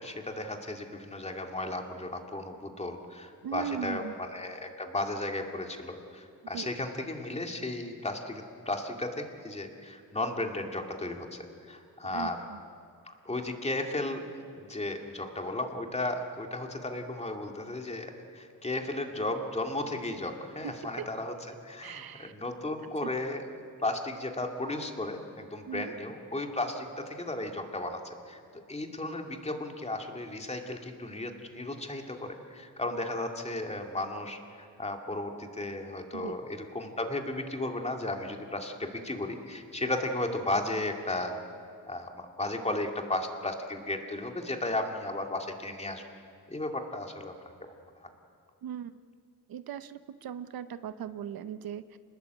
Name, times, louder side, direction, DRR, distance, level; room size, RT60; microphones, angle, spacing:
voice 1, 0.0-4.0 4.3-12.4 13.0-14.2 14.5-23.4 23.8-41.4 41.9-46.0 46.5-47.3 48.0-48.1, left 2 dB, 15° left, 3 dB, 2.4 m, -35 dB
voice 2, 3.4-4.1 6.5-6.7 12.1-12.6 20.6-21.1 21.8-22.3 23.0-23.1 25.6-25.9 36.1-36.4 48.6-48.9 49.5-52.0, right 8 dB, 70° right, 12 dB, 0.9 m, -39 dB
27.5 x 20.0 x 8.2 m, 2.3 s
cardioid pair, 125°, 37 cm